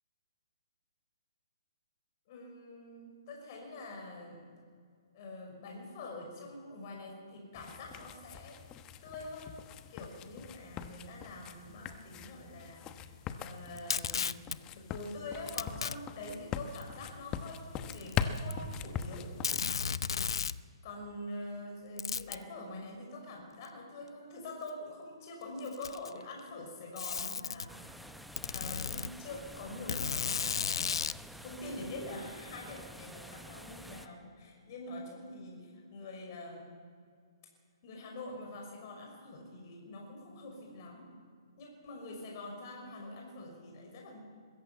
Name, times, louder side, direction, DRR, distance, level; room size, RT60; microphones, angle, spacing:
voice 1, 2.3-4.4 5.1-8.6 9.0-9.6 9.9-13.0 13.4-14.4 14.7-19.3 20.8-28.1 28.5-31.0 31.4-36.7 37.8-41.1 41.6-44.2, left 2 dB, 45° left, 1 dB, 5.9 m, -45 dB
sound 1, 7.5-20.1, left 7 dB, 25° left, 1.1 m, -41 dB
Packing tape duct tape, 13.8-14.6 15.5-16.0 16.8-16.9 17.9-18.7 19.0-19.1 19.4-20.6 22.0-22.4 23.6-23.7 24.7-24.8 25.6-26.2 27.0-27.7 28.4-29.1 29.9-31.2, left 6 dB, 70° left, 0.7 m, -34 dB
sound 2, 27.7-34.1, equal, ahead, 0.8 m, -49 dB
21.5 x 15.0 x 8.5 m, 2.1 s
hypercardioid pair, 140°, 3 cm